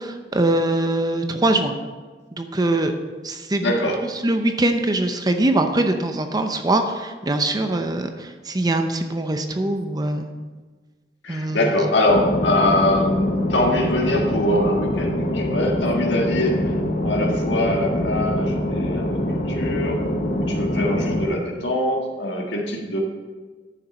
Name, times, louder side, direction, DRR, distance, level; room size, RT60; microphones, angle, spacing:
voice 1, 0.0-1.7 2.4-2.9 3.2-3.7 4.2-10.3 11.3-11.6, right 2 dB, 20° right, 6 dB, 0.6 m, -22 dB
voice 2, 3.6-4.0 11.2-16.7 17.0-20.0 20.3-23.0, left 1 dB, 85° left, 0 dB, 1.7 m, -23 dB
bow navy ambience, 12.1-21.3, left 1 dB, 45° left, 1.0 m, -24 dB
10.0 x 7.1 x 5.3 m, 1.4 s
head